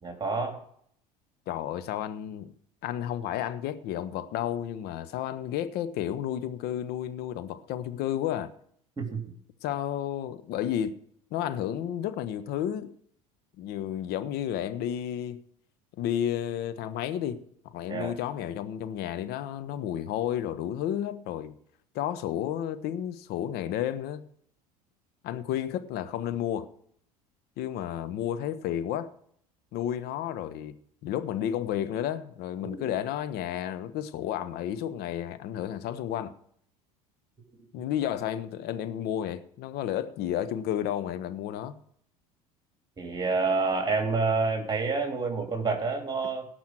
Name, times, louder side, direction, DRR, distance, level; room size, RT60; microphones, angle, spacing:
voice 1, 0.0-0.6 9.0-9.2 17.9-18.1 32.6-32.9 43.0-46.5, right 4 dB, 20° right, 3.3 m, -28 dB
voice 2, 1.5-2.5 2.8-8.5 9.6-11.0 11.3-12.9 13.6-15.4 16.0-21.5 21.9-24.2 25.2-26.7 27.6-29.1 29.7-30.8 31.0-36.3 37.7-41.8, left 10 dB, 55° left, 1.1 m, -32 dB
17.5 x 6.2 x 6.2 m
hypercardioid pair, 75°, 19 cm